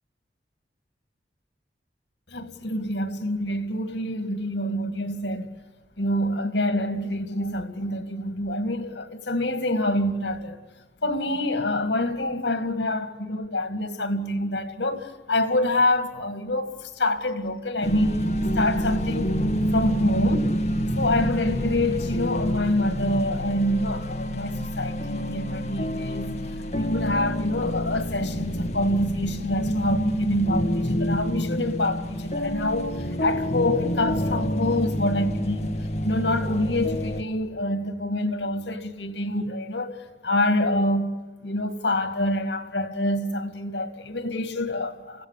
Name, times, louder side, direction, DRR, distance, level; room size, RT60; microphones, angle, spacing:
voice 1, 2.3-5.5 6.0-10.6 11.0-18.3 18.5-19.4 19.7-20.6 21.0-26.3 26.7-35.7 36.0-41.1 41.4-45.3, left 1 dB, 80° left, 2.3 m, -26 dB
sound 1, 17.8-37.2, equal, 40° left, 1.8 m, -27 dB
28.5 x 16.5 x 8.4 m
head